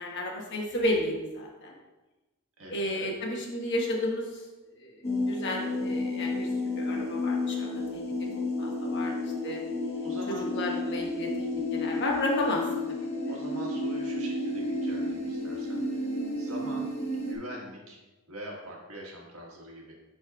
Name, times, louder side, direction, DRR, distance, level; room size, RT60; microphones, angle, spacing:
voice 1, 0.0-1.7 2.7-4.4 4.7-6.5 6.8-8.0 8.6-9.1 9.4-9.6 10.3-12.6, left 1 dB, 55° left, -1 dB, 1.3 m, -32 dB
voice 2, 2.6-3.1 10.0-10.5 13.2-16.0 16.3-16.9 17.2-18.0 18.3-19.9, equal, 75° right, -2 dB, 1.6 m, -43 dB
sound 1, 5.0-17.4, left 2 dB, 30° left, 1.2 m, -31 dB
10.5 x 4.2 x 2.3 m, 1.1 s
head